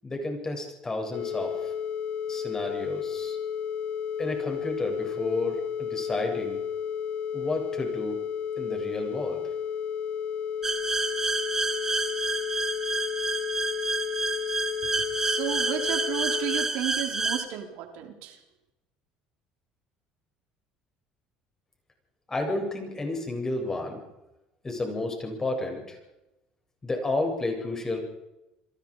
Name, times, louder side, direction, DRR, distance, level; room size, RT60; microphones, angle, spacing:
voice 1, 0.0-1.7 2.3-3.4 4.2-6.6 7.3-8.2 8.6-9.4 22.3-24.0 24.6-26.0 26.8-28.0, left 2 dB, 20° left, 3 dB, 8.0 m, -31 dB
sound 1, 1.1-16.7, left 8 dB, 55° left, 1.1 m, -32 dB
sound 2, 10.6-17.4, right 3 dB, 20° right, 3.3 m, -29 dB
voice 2, 15.2-18.4, right 11 dB, 75° right, 3 dB, 4.6 m, -33 dB
29.5 x 23.0 x 5.2 m, 0.96 s
supercardioid pair, 105°, 3 cm